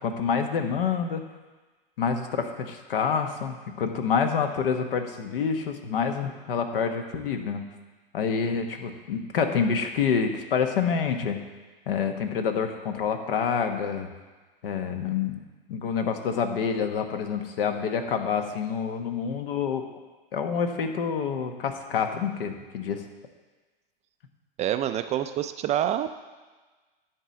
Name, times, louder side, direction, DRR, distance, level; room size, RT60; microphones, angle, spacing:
voice 1, 0.0-1.2 2.0-7.6 8.1-11.4 11.9-14.1 14.6-15.4 15.7-19.8 20.3-23.0, left 6 dB, 70° left, 6 dB, 1.3 m, -27 dB
voice 2, 24.6-26.1, right 11 dB, 25° right, 9 dB, 0.4 m, -27 dB
10.5 x 4.6 x 7.7 m, 1.3 s
hypercardioid pair, 105°, 29 cm